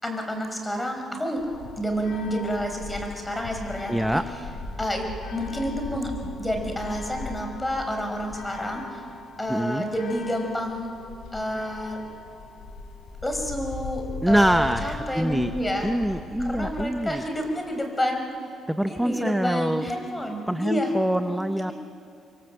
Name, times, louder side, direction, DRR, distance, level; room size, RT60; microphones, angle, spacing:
voice 1, 0.0-1.5 1.8-4.2 4.8-6.1 6.4-9.0 9.4-10.9 11.3-12.0 13.2-15.9 16.4-18.3 18.9-20.9 21.2-21.7, equal, 15° left, 3 dB, 5.3 m, -29 dB
sound 1, 1.4-17.2, left 3 dB, 85° left, 4.2 m, -39 dB
voice 2, 3.9-4.2 9.5-9.8 14.2-15.5 15.8-17.2 18.7-19.9 20.5-21.7, right 1 dB, 5° right, 9 dB, 0.8 m, -24 dB
26.5 x 23.0 x 7.9 m, 2.5 s
cardioid pair, 90°, 0 cm